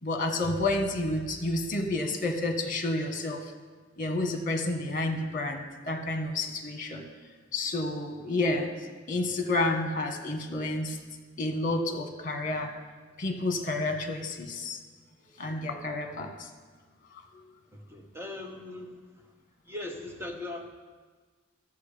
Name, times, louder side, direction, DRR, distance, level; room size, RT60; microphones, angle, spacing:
voice 1, 0.0-3.4 4.0-7.0 7.5-8.7 9.1-11.0 11.4-12.7 13.2-14.8 15.4-16.5, left 2 dB, 40° left, 4 dB, 1.3 m, -30 dB
voice 2, 17.7-19.3 19.6-20.7, left 2 dB, 10° right, 2 dB, 1.1 m, -40 dB
13.0 x 7.3 x 5.0 m, 1.4 s
head